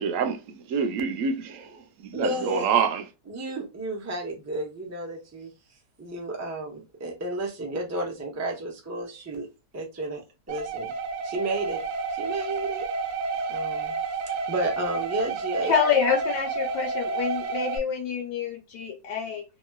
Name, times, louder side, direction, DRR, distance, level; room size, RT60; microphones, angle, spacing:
voice 1, 0.0-3.0, right 6 dB, 70° right, 0.8 m, -27 dB
voice 2, 2.1-2.8 3.3-5.5 6.0-9.5 9.7-10.2 10.5-10.9 11.2-11.8 12.1-12.9 13.5-13.9 14.3-15.7, right 2 dB, 25° right, 0.3 m, -32 dB
sound 1, 10.5-17.8, right 4 dB, 90° right, 1.2 m, -30 dB
voice 3, 15.6-19.4, left 7 dB, 85° left, 1.4 m, -27 dB
2.9 x 2.9 x 2.2 m
omnidirectional pair, 1.8 m